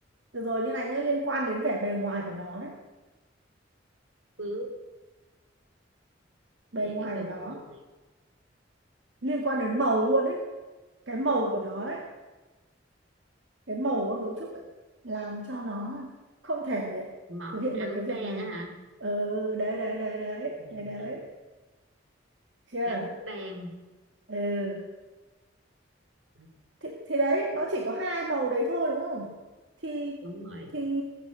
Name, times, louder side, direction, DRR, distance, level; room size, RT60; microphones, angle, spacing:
voice 1, 0.3-2.7 6.7-7.6 9.2-10.4 11.1-12.1 13.7-14.6 15.0-16.1 16.4-17.1 17.5-18.5 19.0-21.2 22.7-23.1 24.3-24.8 26.8-29.3 29.8-30.2 30.7-31.0, right 1 dB, 70° right, 1 dB, 2.2 m, -30 dB
voice 2, 4.4-4.7 6.8-7.8 17.3-18.7 20.6-20.8 22.9-23.7 26.4-26.5 30.2-30.7, right 1 dB, 90° right, 4 dB, 3.6 m, -38 dB
20.0 x 9.2 x 7.8 m, 1.2 s
head